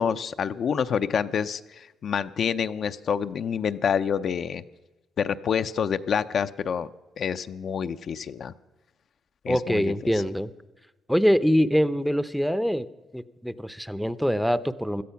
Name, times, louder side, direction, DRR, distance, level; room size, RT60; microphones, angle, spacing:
voice 1, 0.0-4.6 5.2-6.9 7.2-8.5 9.4-10.1, left 7 dB, 60° left, 10 dB, 0.6 m, -27 dB
voice 2, 9.5-10.5 11.1-12.9 13.1-15.0, equal, ahead, 16 dB, 0.7 m, -24 dB
17.0 x 13.0 x 5.8 m, 1.1 s
cardioid pair, 90°, 0 cm